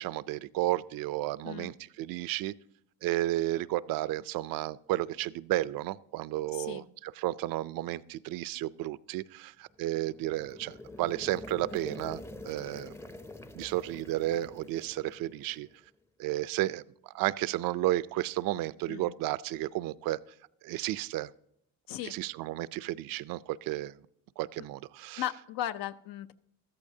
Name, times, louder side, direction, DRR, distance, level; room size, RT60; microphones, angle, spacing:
voice 1, 0.0-2.5 3.0-12.9 13.5-15.7 16.2-20.2 20.6-21.3 22.0-24.0 24.4-25.2, right 15 dB, 85° right, 17 dB, 0.5 m, -32 dB
voice 2, 6.5-6.9 18.9-19.2 21.9-22.1 25.2-26.3, left 12 dB, 85° left, 12 dB, 0.7 m, -36 dB
sound 1, 9.7-15.8, left 2 dB, 10° left, 0.5 m, -46 dB
14.0 x 13.5 x 2.7 m, 0.74 s
cardioid pair, 125°, 33 cm